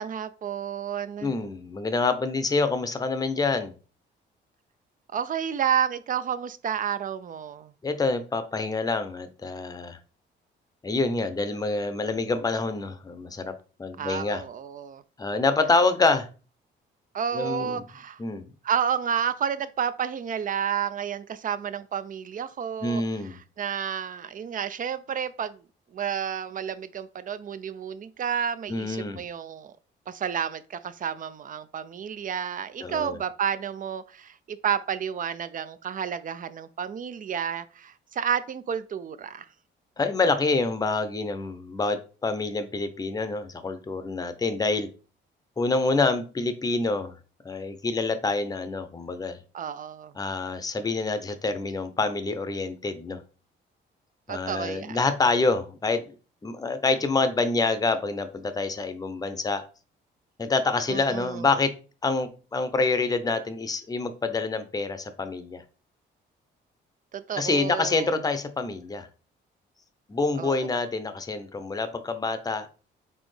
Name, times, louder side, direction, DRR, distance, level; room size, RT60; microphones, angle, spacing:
voice 1, 0.0-1.3 5.1-7.7 14.0-15.0 17.1-18.2 18.6-23.0 23.6-25.6 25.9-29.7 30.1-39.5 49.5-50.1 54.3-55.0 60.9-61.5 67.1-68.2 70.4-70.7, right 8 dB, 45° right, 0.5 m, -30 dB
voice 2, 1.2-3.7 7.8-10.0 10.8-13.5 13.8-14.4 15.2-16.3 17.3-17.8 18.2-18.5 22.8-23.4 28.7-29.2 32.8-33.2 40.0-44.9 45.6-47.1 47.4-49.4 50.2-53.2 54.3-56.1 56.4-59.6 60.4-61.7 62.0-65.6 67.4-69.1 70.1-72.7, left 3 dB, 20° left, 0.6 m, -27 dB
4.2 x 3.4 x 3.3 m
cardioid pair, 90°, 20 cm